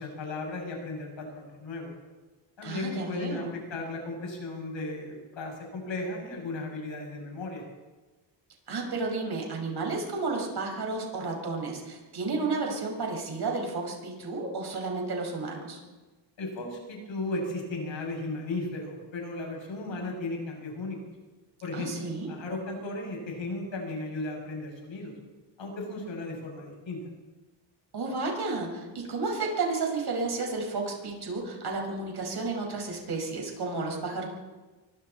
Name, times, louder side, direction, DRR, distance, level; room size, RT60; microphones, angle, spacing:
voice 1, 0.0-1.9 2.6-7.6 16.4-21.0 21.6-25.1 25.6-27.0, left 2 dB, 75° left, 0 dB, 7.8 m, -35 dB
voice 2, 2.6-3.5 8.7-15.8 21.7-22.3 27.9-34.3, right 3 dB, 55° right, 0 dB, 6.0 m, -32 dB
26.5 x 24.0 x 4.4 m, 1.2 s
wide cardioid pair, 165°, 46 cm